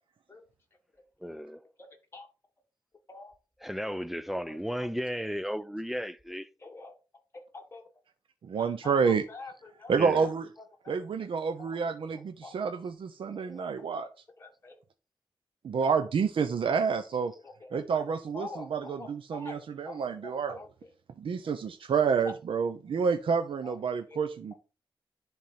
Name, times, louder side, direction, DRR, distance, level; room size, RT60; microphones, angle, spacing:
voice 1, 1.2-1.6 3.6-6.5 9.9-10.3, equal, ahead, 0.3 m, -34 dB
voice 2, 6.6-6.9 7.3-7.8 8.8-9.5 9.8-10.3 10.8-11.0 11.6-11.7 12.4-12.5 13.4-13.7 13.9-14.1 14.4-14.7 17.6-17.8 18.3-19.6 19.9-20.7 23.6-23.7 24.1-24.2, left 3 dB, 30° left, 1.5 m, -45 dB
voice 3, 8.4-9.5 9.9-10.5 10.9-14.1 15.6-17.3 17.7-20.6 21.2-24.5, right 6 dB, 80° right, 0.6 m, -29 dB
10.5 x 3.5 x 4.2 m
wide cardioid pair, 170°, 9 cm